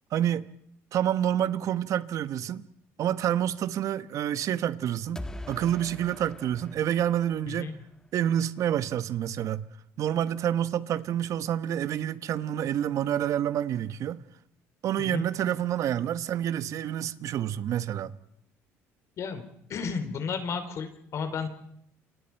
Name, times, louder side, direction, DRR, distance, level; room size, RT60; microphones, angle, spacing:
voice 1, 0.1-0.5 0.9-2.7 3.0-7.7 8.1-9.7 10.0-14.2 14.8-18.1, right 10 dB, 60° right, 1.0 m, -28 dB
sound 1, 5.2-8.1, left 1 dB, 10° left, 1.2 m, -43 dB
voice 2, 19.7-21.5, left 5 dB, 55° left, 3.2 m, -33 dB
29.0 x 24.5 x 4.5 m
supercardioid pair, 90°, 6 cm